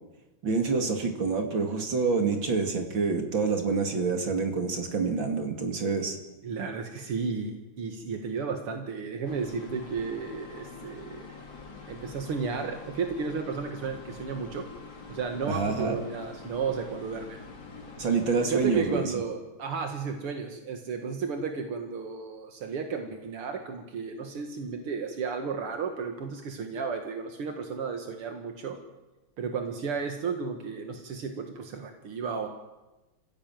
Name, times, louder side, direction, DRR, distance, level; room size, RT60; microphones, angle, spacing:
voice 1, 0.4-6.2 15.5-16.0 18.0-19.1, right 4 dB, 60° right, 4 dB, 3.3 m, -27 dB
voice 2, 6.4-11.3 11.9-14.7 15.1-17.4 18.5-28.8 29.4-32.5, right 5 dB, 85° right, 5 dB, 2.7 m, -33 dB
sound 1, 9.3-19.0, left 4 dB, 50° left, 3.1 m, -45 dB
25.5 x 16.0 x 9.2 m, 1.1 s
omnidirectional pair, 2.4 m